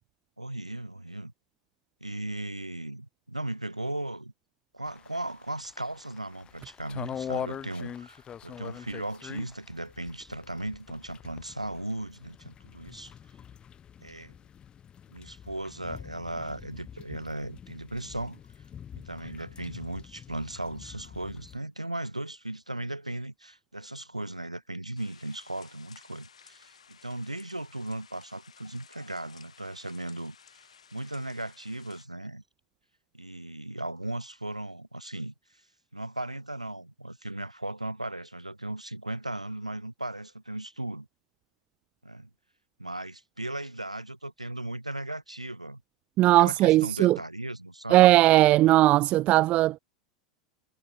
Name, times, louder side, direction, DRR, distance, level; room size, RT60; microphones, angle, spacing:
voice 1, 0.4-1.3 2.0-4.3 4.7-13.1 14.0-14.3 15.1-18.4 19.0-30.6 30.9-32.4 33.1-35.3 35.9-41.1 42.0-42.3 42.8-45.8 46.4-48.1, right 1 dB, 85° right, 6.3 m, -37 dB
sound 1, 4.9-21.6, left 8 dB, 25° left, 1.7 m, -44 dB
sound 2, 25.0-32.1, left 7 dB, 75° left, 7.1 m, -56 dB
voice 2, 46.2-47.2 47.9-49.8, right 16 dB, 40° right, 0.5 m, -19 dB
figure-of-eight pair, 80°, 3 cm